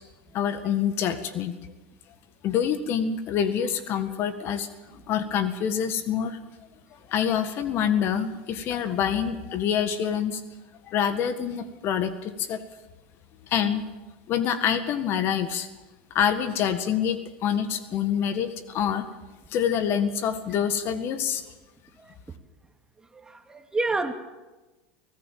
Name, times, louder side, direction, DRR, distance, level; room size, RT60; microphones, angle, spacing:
voice 1, 0.3-1.6 2.4-6.4 7.1-10.4 10.9-12.6 13.5-13.9 14.3-15.7 16.1-19.1 19.5-21.4, left 8 dB, 45° left, 11 dB, 1.8 m, -26 dB
voice 2, 23.2-24.1, right 3 dB, 15° right, 6 dB, 2.2 m, -28 dB
24.0 x 17.0 x 7.6 m, 1.2 s
hypercardioid pair, 95°, 5 cm